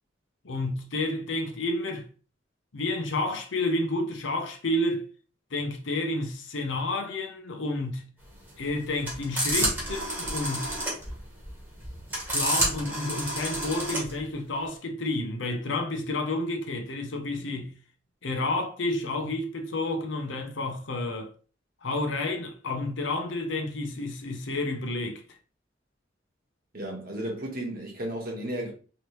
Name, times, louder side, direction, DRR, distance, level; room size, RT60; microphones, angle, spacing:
voice 1, 0.4-2.1 2.7-5.0 5.5-8.1 8.6-10.8 12.3-17.7 18.2-21.3 21.8-25.2, left 2 dB, 80° left, 0.7 m, -30 dB
sound 1, 8.3-14.2, right 1 dB, 10° right, 1.2 m, -30 dB
voice 2, 26.7-28.7, right 1 dB, 50° right, 1.1 m, -33 dB
3.0 x 2.8 x 3.0 m
head